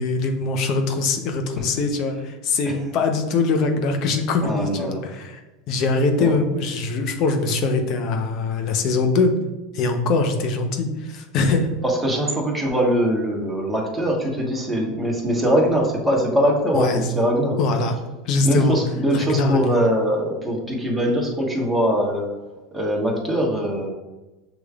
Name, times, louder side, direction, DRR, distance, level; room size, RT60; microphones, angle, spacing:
voice 1, 0.0-5.4 5.7-9.3 9.7-11.7 16.7-17.0 17.6-17.9 18.2-18.8 19.1-19.8, left 3 dB, 55° left, 6 dB, 0.8 m, -22 dB
voice 2, 4.4-5.0 6.1-6.4 11.8-17.6 18.4-22.3 22.7-23.9, equal, 5° right, -2 dB, 1.3 m, -22 dB
6.9 x 3.1 x 2.4 m, 1.1 s
hypercardioid pair, 105°, 0 cm